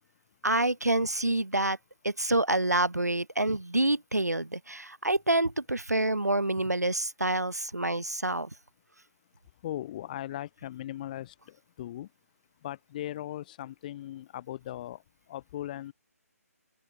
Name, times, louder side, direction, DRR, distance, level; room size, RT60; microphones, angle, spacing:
voice 1, 0.4-1.8 2.0-8.5, right 2 dB, 90° right, 1.7 m, -27 dB
voice 2, 9.6-12.1 12.6-15.0 15.3-15.9, left 13 dB, 30° left, 7.3 m, -38 dB
open air
figure-of-eight pair, 145°, 9 cm